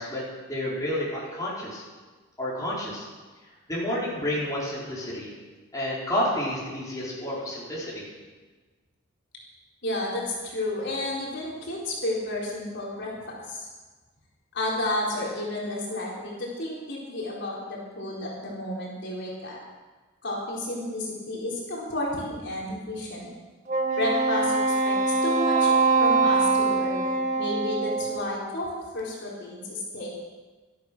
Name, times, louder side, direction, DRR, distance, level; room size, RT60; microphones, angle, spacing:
voice 1, 0.0-1.8 2.4-3.1 3.7-5.3 5.7-8.0, left 1 dB, 15° left, -7 dB, 4.6 m, -30 dB
voice 2, 9.8-13.7 14.5-19.6 20.2-23.3 23.9-24.6 24.8-30.1, left 1 dB, 55° left, -4 dB, 4.3 m, -31 dB
Wind instrument woodwind instrument, 23.7-28.3, right 3 dB, 35° right, 1.4 m, -23 dB
17.0 x 13.5 x 6.2 m, 1.3 s
head